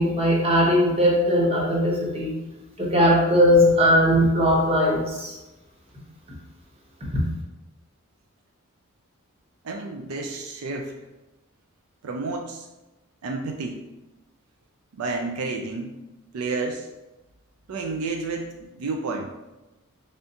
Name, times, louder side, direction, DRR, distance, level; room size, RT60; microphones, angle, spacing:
voice 1, 0.0-2.3 2.8-5.4 7.1-7.2, equal, 30° right, -3 dB, 0.9 m, -19 dB
voice 2, 9.6-10.9 12.0-12.7 13.2-13.8 14.9-16.0 16.3-16.9 17.7-19.3, right 3 dB, 75° right, 2 dB, 0.4 m, -30 dB
3.6 x 3.3 x 2.8 m, 1.0 s
head